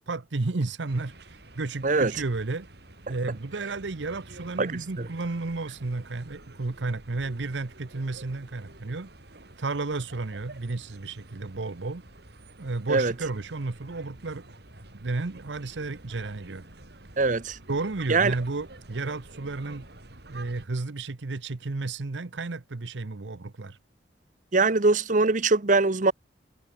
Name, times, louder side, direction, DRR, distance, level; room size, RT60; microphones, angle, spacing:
voice 1, 0.1-2.7 3.1-9.1 9.6-12.1 12.6-14.4 14.9-16.6 17.7-19.8 20.3-23.8, right 3 dB, 75° right, 0.9 m, -32 dB
sound 1, 0.9-20.7, right 2 dB, 60° right, 3.1 m, -49 dB
voice 2, 4.6-5.1 12.9-13.1 17.2-17.6 18.1-18.3 24.5-26.1, right 3 dB, 45° right, 0.9 m, -22 dB
head